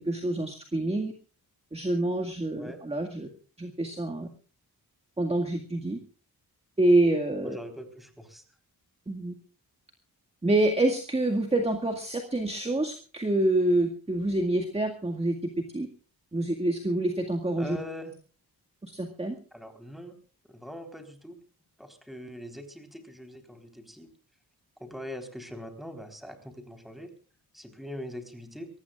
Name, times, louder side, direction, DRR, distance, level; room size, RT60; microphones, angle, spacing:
voice 1, 0.1-1.1 1.7-3.3 3.6-4.3 5.2-6.0 6.8-7.6 9.1-9.3 10.4-15.3 15.7-15.9 16.3-17.8 18.9-19.4, right 1 dB, 15° right, 3 dB, 2.0 m, -26 dB
voice 2, 7.4-8.4 17.6-18.1 19.5-20.2 20.5-21.4 21.8-24.1 24.8-27.1 27.5-28.7, equal, ahead, 6 dB, 3.9 m, -42 dB
24.0 x 19.0 x 2.5 m, 0.38 s
wide cardioid pair, 135°, 38 cm